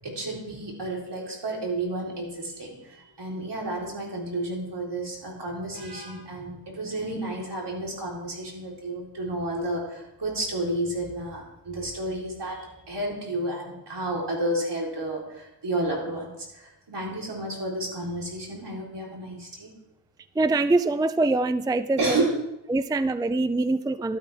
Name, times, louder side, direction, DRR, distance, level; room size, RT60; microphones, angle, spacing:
voice 1, 0.0-19.7 22.0-22.4, right 1 dB, 70° right, -3 dB, 3.9 m, -31 dB
voice 2, 20.4-22.2 22.7-24.2, right 2 dB, 10° right, 13 dB, 0.4 m, -24 dB
12.5 x 12.5 x 3.5 m, 0.90 s
cardioid pair, 55°, 43 cm